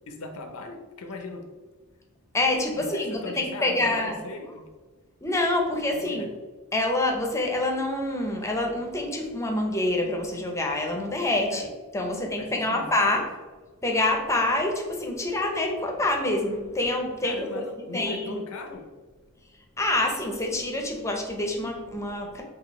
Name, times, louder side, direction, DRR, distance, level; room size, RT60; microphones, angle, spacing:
voice 1, 0.1-1.5 2.7-4.6 5.9-6.3 11.5-11.6 12.4-12.9 17.2-18.9, left 3 dB, 75° left, 5 dB, 0.6 m, -38 dB
voice 2, 2.3-4.2 5.2-6.3 6.7-11.7 11.9-13.2 13.8-17.6 17.9-18.3 19.8-22.4, left 2 dB, 15° left, 1 dB, 0.6 m, -26 dB
6.1 x 2.5 x 3.1 m, 1.3 s
head